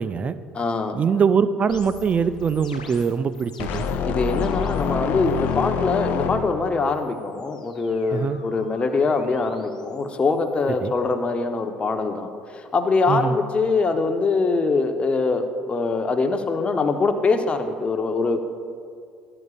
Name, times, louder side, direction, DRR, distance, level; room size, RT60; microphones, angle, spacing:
voice 1, 0.0-0.4 0.9-3.9 8.1-8.4 10.8-10.9 13.1-13.4, right 6 dB, 35° right, 13 dB, 0.5 m, -22 dB
voice 2, 0.5-0.9 4.0-18.5, left 3 dB, 30° left, 6 dB, 1.0 m, -23 dB
sound 1, 1.7-4.9 5.2-5.8 6.8-10.9, left 5 dB, 85° left, 0.8 m, -46 dB
sound 2, 3.6-6.8, left 6 dB, 50° left, 0.7 m, -26 dB
16.5 x 9.9 x 2.5 m, 2.3 s
figure-of-eight pair, 55°, 4 cm